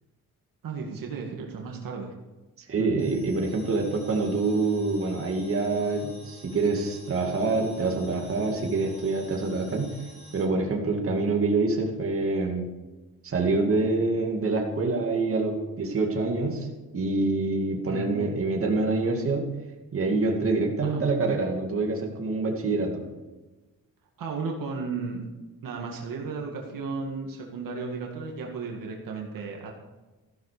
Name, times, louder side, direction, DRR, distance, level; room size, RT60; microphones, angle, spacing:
voice 1, 0.6-2.1 2.8-3.0 17.9-18.1 20.8-21.0 24.2-25.2 25.6-29.7, right 4 dB, 65° right, 1 dB, 1.9 m, -34 dB
voice 2, 2.7-9.9 10.3-12.7 13.2-16.7 16.9-19.4 19.9-23.0, right 3 dB, 40° right, 1 dB, 2.2 m, -26 dB
sound 1, 3.0-10.4, equal, 30° left, 5.4 m, -51 dB
14.5 x 11.5 x 5.0 m, 1.2 s
cardioid pair, 145°, 35 cm